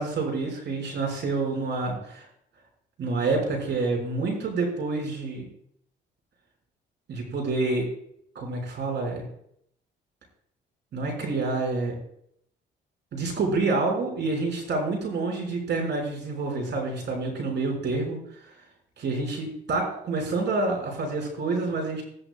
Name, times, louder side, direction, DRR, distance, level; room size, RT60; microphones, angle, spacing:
voice 1, 0.0-2.2 3.0-5.4 7.1-7.9 8.3-9.3 10.9-11.9 13.1-18.2 19.0-22.0, right 3 dB, 65° right, 1 dB, 6.2 m, -28 dB
20.0 x 14.0 x 2.5 m, 0.72 s
cardioid pair, 90°, 20 cm